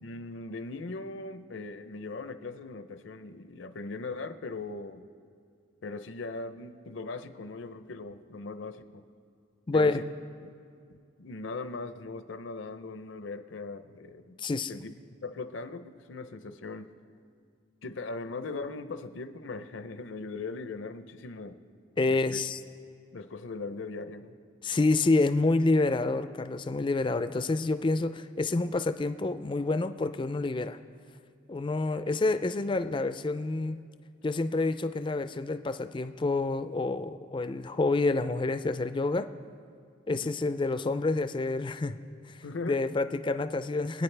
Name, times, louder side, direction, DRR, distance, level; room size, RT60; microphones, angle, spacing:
voice 1, 0.0-5.0 5.8-9.0 9.7-10.0 10.4-10.5 11.2-14.4 14.7-14.9 15.2-16.9 17.8-21.6 22.1-22.4 23.1-24.3 40.1-40.3 42.4-42.8, left 3 dB, 70° left, 11 dB, 0.6 m, -39 dB
voice 2, 9.7-10.1 14.4-14.7 22.0-22.6 24.6-30.8 31.5-33.8 34.2-39.3 40.1-42.0 42.6-44.0, left 3 dB, 25° left, 11 dB, 0.4 m, -28 dB
25.0 x 9.2 x 3.3 m, 2.3 s
head